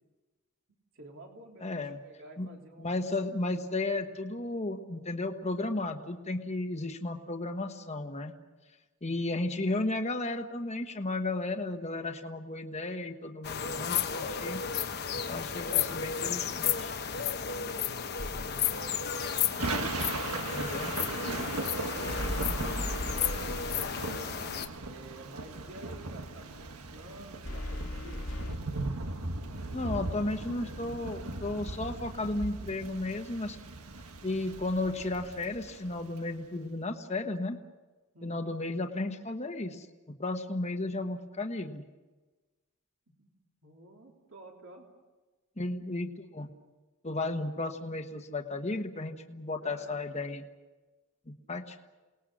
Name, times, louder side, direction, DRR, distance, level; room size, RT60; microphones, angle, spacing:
voice 1, 0.9-2.9 9.0-9.3 17.5-18.7 24.8-28.3 38.1-38.5 43.2-43.3 43.6-44.9 49.6-50.0, right 1 dB, 60° right, 1 dB, 3.5 m, -51 dB
voice 2, 1.6-2.0 2.4-2.5 2.8-8.3 9.0-14.6 15.3-16.9 20.4-20.9 29.7-33.6 34.2-37.6 38.2-39.9 40.2-41.8 45.6-46.5 47.0-50.4 51.3-51.8, left 2 dB, 30° left, 4 dB, 1.3 m, -34 dB
sound 1, 13.4-24.7, left 7 dB, 45° left, 1.1 m, -33 dB
sound 2, 18.2-18.8 22.0-24.1 27.4-28.6, left 1 dB, 70° left, 2.1 m, -37 dB
Thunder / Rain, 18.7-36.2, right 2 dB, 80° right, 1.4 m, -38 dB
28.5 x 19.5 x 6.4 m, 1.2 s
head